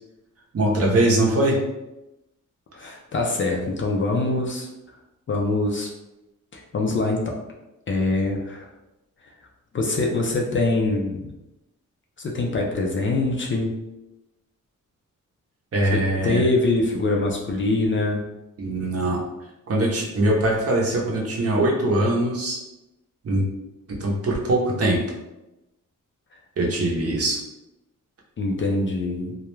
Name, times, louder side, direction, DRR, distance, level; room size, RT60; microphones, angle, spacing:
voice 1, 0.5-1.6 15.7-16.4 18.6-19.2 19.7-22.6 23.2-23.5 23.9-25.0 26.6-27.4, right 1 dB, 45° right, -2 dB, 0.6 m, -22 dB
voice 2, 2.7-4.7 5.3-5.9 6.5-7.3 7.9-8.7 9.7-11.3 12.2-13.7 15.9-18.2 28.4-29.4, left 2 dB, 40° left, 0 dB, 0.4 m, -24 dB
2.3 x 2.1 x 3.0 m, 0.94 s
wide cardioid pair, 125°, 33 cm